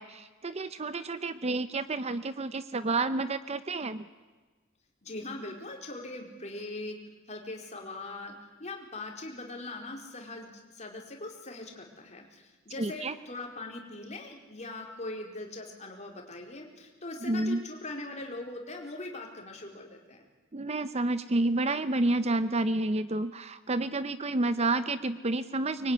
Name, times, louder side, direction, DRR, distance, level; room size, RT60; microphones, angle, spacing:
voice 1, 0.0-4.1 12.8-13.2 17.2-17.6 20.5-25.9, right 2 dB, 30° right, 12 dB, 0.8 m, -30 dB
voice 2, 5.0-7.0 7.3-20.2, left 2 dB, 35° left, 1 dB, 4.4 m, -41 dB
24.5 x 23.0 x 9.8 m, 1.3 s
head